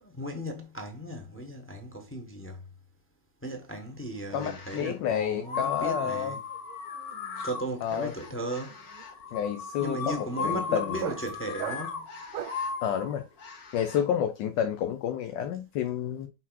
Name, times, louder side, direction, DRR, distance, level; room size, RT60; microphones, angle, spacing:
voice 1, 0.0-2.6 3.4-6.4 7.4-8.8 9.8-12.1, right 1 dB, 15° left, 0.5 m, -36 dB
voice 2, 4.3-6.4 7.8-8.1 9.3-11.1 12.8-13.2 13.7-16.3, left 9 dB, 85° left, 1.4 m, -30 dB
sound 1, 4.3-4.9 5.4-14.0, left 5 dB, 60° left, 1.6 m, -37 dB
sound 2, 5.9-6.2 6.5-12.7, right 10 dB, 75° right, 1.1 m, -42 dB
5.7 x 4.1 x 2.3 m
omnidirectional pair, 1.9 m